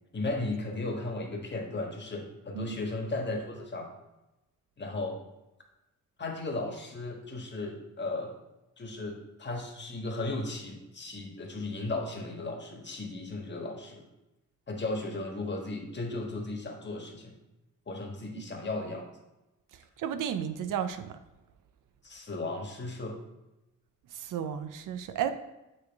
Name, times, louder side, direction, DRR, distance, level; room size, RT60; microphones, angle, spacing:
voice 1, 0.1-3.9 4.8-5.2 6.2-8.4 8.8-14.0 14.7-17.3 17.9-19.1 22.0-23.2, left 2 dB, 35° left, 1 dB, 1.3 m, -35 dB
voice 2, 20.0-21.2 24.1-25.3, right 9 dB, 85° right, 10 dB, 0.5 m, -33 dB
8.6 x 3.2 x 3.4 m, 0.98 s
cardioid pair, 80°, 31 cm